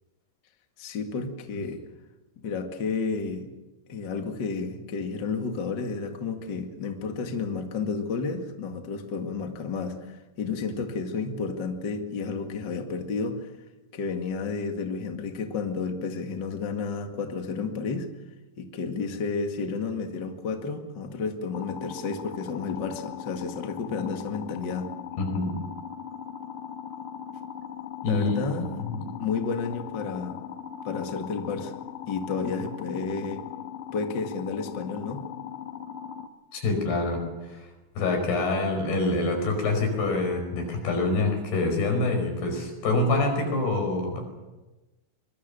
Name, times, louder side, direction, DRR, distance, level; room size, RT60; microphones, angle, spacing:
voice 1, 0.8-1.8 2.4-3.5 3.9-13.5 13.9-18.1 18.6-24.9 28.1-28.7 29.2-30.4 30.8-31.7 32.1-33.4 33.9-35.2, left 4 dB, 35° left, 4 dB, 2.0 m, -31 dB
sound 1, 21.5-36.3, left 9 dB, 60° left, 2.6 m, -39 dB
voice 2, 25.2-25.5 28.0-29.1 36.5-37.3 37.5-37.7 38.0-44.2, left 2 dB, 90° left, 4 dB, 7.2 m, -26 dB
24.5 x 22.5 x 6.9 m, 1.1 s
omnidirectional pair, 4.4 m